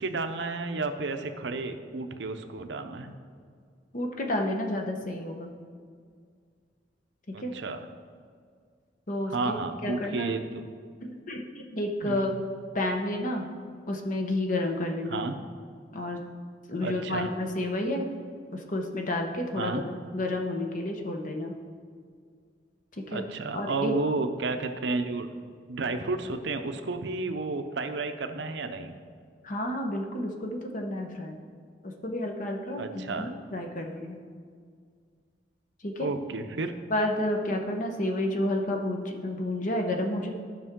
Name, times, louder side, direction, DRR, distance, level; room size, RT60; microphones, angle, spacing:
voice 1, 0.0-3.1 7.3-7.9 9.3-10.7 12.0-12.3 15.1-15.4 16.8-17.3 19.6-19.8 23.1-25.3 25.7-28.9 32.8-33.3 36.0-36.8, right 3 dB, 75° right, 8 dB, 0.6 m, -32 dB
voice 2, 3.9-5.5 7.4-7.5 9.1-9.5 9.8-10.3 11.0-12.3 12.7-13.5 13.9-15.2 15.9-16.2 16.7-18.1 18.5-19.8 20.1-21.5 23.0-23.2 23.5-24.0 29.4-31.4 31.8-34.2 35.8-36.1 36.9-40.3, left 1 dB, 45° left, 3 dB, 1.0 m, -30 dB
13.5 x 5.3 x 3.7 m, 2.1 s
head